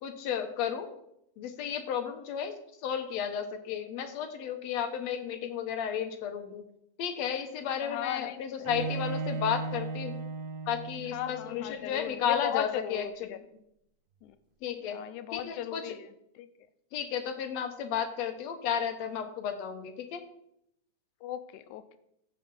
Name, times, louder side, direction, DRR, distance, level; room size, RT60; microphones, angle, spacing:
voice 1, 0.0-0.9 1.4-2.5 2.8-6.6 7.0-10.2 10.7-13.4 14.6-15.0 15.3-15.9 16.9-20.2, left 8 dB, 70° left, 7 dB, 2.0 m, -33 dB
voice 2, 7.8-8.7 11.1-13.4 14.2-14.4 14.9-16.1 16.4-16.5 21.2-22.0, left 11 dB, 85° left, 12 dB, 2.1 m, -37 dB
Bowed string instrument, 8.6-11.6, right 4 dB, 65° right, 2.1 m, -36 dB
15.5 x 5.7 x 5.4 m, 0.77 s
omnidirectional pair, 3.5 m